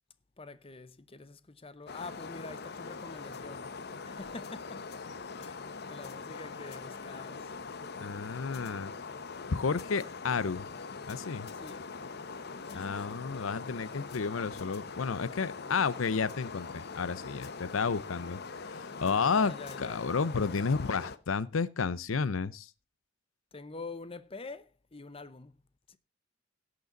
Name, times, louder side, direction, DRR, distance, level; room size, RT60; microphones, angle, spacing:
voice 1, 0.4-3.7 4.0-4.9 5.4-7.5 11.5-11.8 12.6-13.2 19.2-20.1 23.5-25.6 25.9-26.0, left 3 dB, 30° left, 0.8 m, -46 dB
sound 1, 1.9-21.2, left 4 dB, 55° left, 0.9 m, -42 dB
voice 2, 8.0-8.9 9.5-10.7 11.1-11.5 12.7-22.7, left 5 dB, 90° left, 0.6 m, -31 dB
17.5 x 6.8 x 3.9 m
head